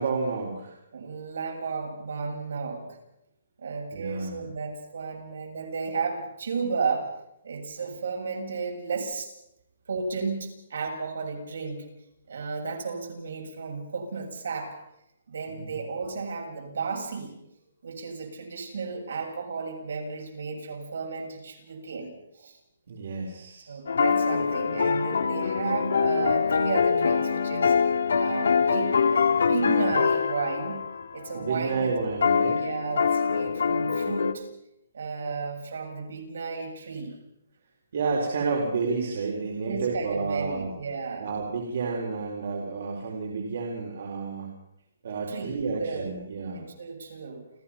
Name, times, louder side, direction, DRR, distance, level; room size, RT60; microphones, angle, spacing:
voice 1, 0.0-0.7 3.9-4.5 15.5-15.7 22.9-23.7 31.3-32.6 37.9-40.7 41.2-44.5 45.0-46.6, right 4 dB, 50° right, 0 dB, 4.3 m, -30 dB
voice 2, 0.9-3.0 3.6-7.1 7.4-9.3 9.9-11.9 12.3-14.8 15.3-17.3 17.8-22.6 23.7-27.8 28.2-30.8 31.1-31.9 32.5-34.4 34.9-37.1 39.6-41.3 45.3-46.1 46.5-47.4, right 4 dB, 65° right, 2 dB, 7.3 m, -33 dB
sound 1, 23.9-34.3, left 6 dB, 85° left, 1.9 m, -24 dB
29.5 x 15.0 x 5.9 m, 0.81 s
hypercardioid pair, 175°, 0 cm